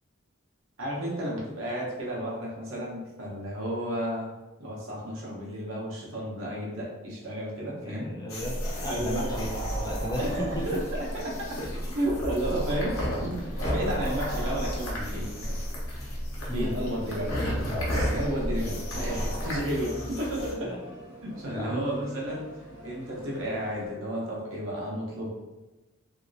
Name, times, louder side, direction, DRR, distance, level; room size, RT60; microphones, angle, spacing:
voice 1, 0.8-4.3 4.6-8.1 8.9-9.3 10.2-11.5 11.9-15.6 16.5-17.4 17.8-20.7 21.2-22.5 22.8-25.3, equal, 70° right, -4 dB, 0.9 m, -32 dB
voice 2, 7.8-10.6 16.5-16.8 20.6-20.8 21.5-21.8, equal, 20° left, -4 dB, 0.4 m, -34 dB
sound 1, 8.3-20.5, left 1 dB, 80° left, 0.9 m, -35 dB
sound 2, 8.4-19.6, equal, 35° left, 1.1 m, -34 dB
sound 3, 10.5-23.9, equal, 10° right, 1.4 m, -47 dB
3.0 x 2.8 x 2.6 m, 1.1 s
head